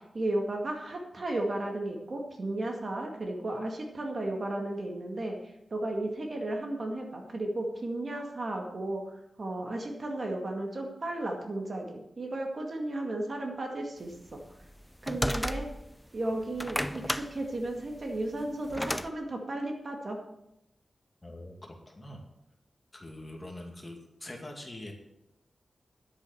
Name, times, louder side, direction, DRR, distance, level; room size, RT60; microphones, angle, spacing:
voice 1, 0.1-5.4 5.7-14.4 15.0-15.7 16.1-20.2, right 1 dB, 45° right, 2 dB, 2.0 m, -34 dB
sound 1, 14.3-16.0 16.4-19.1, equal, 5° left, 0.5 m, -33 dB
voice 2, 21.2-22.2 22.9-24.9, left 1 dB, 20° left, 2 dB, 2.2 m, -44 dB
10.5 x 8.6 x 7.1 m, 0.84 s
wide cardioid pair, 140°, 0 cm